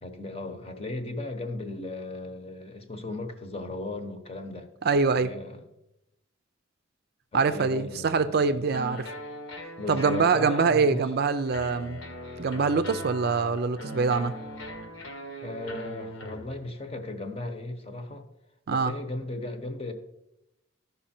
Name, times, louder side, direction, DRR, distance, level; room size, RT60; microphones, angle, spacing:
voice 1, 0.0-5.6 7.3-8.7 9.8-11.1 15.4-18.2 18.7-19.9, left 2 dB, 30° left, 0.9 m, -36 dB
voice 2, 4.8-5.3 7.3-9.1 9.9-12.0 12.4-14.3 18.7-18.9, right 4 dB, 50° right, 0.5 m, -24 dB
sound 1, 8.7-16.7, equal, 85° left, 1.7 m, -40 dB
13.5 x 5.5 x 4.3 m
head